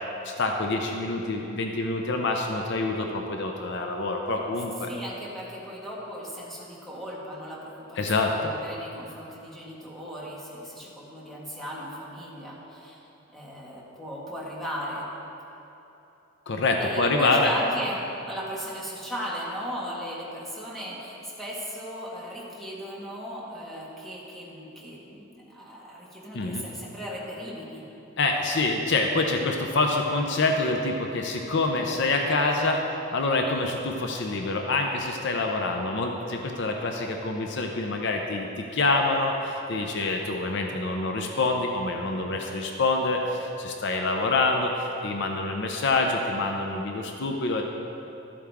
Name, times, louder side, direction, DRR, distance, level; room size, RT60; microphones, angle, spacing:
voice 1, 0.2-4.9 8.0-8.3 16.5-17.5 26.3-26.6 28.2-32.8 33.1-47.6, left 3 dB, 60° left, 2 dB, 0.7 m, -26 dB
voice 2, 4.9-13.0 13.3-15.1 16.8-18.0 18.2-27.8, equal, ahead, -6 dB, 1.8 m, -37 dB
13.0 x 8.5 x 3.6 m, 3.0 s
head